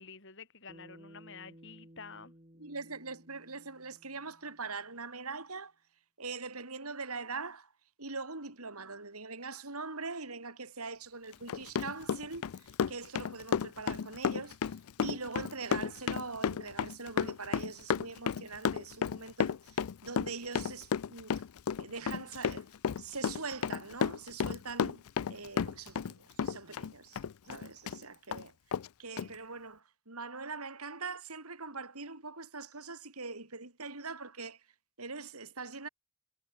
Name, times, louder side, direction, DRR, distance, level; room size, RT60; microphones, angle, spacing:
voice 1, 0.0-2.3, left 5 dB, 55° left, 7.8 m, -49 dB
Bass guitar, 0.7-5.1, equal, 30° right, 4.3 m, -57 dB
voice 2, 2.6-5.7 6.2-7.7 8.0-14.6 15.0-21.4 21.7-22.7 22.9-27.2 27.4-28.5 29.0-34.6 35.0-35.9, right 4 dB, 85° right, 5.2 m, -42 dB
Run, 11.3-26.1 26.4-28.0 28.3-28.4 28.7-28.9 29.2-29.3, left 7 dB, 80° left, 0.4 m, -32 dB
head